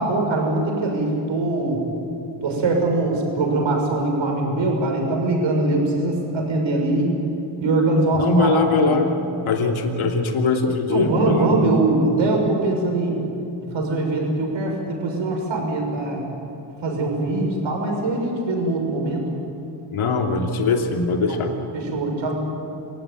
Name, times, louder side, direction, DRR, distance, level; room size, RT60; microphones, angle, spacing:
voice 1, 0.0-1.8 2.4-7.1 7.6-9.0 10.9-13.2 13.6-16.2 16.8-19.3 21.3-21.4 21.7-22.3, right 2 dB, 70° right, 1 dB, 6.7 m, -22 dB
voice 2, 8.2-9.1 9.5-11.5 19.9-21.5, left 3 dB, 75° left, 2 dB, 2.9 m, -21 dB
27.0 x 16.5 x 9.3 m, 2.7 s
cardioid pair, 85°, 49 cm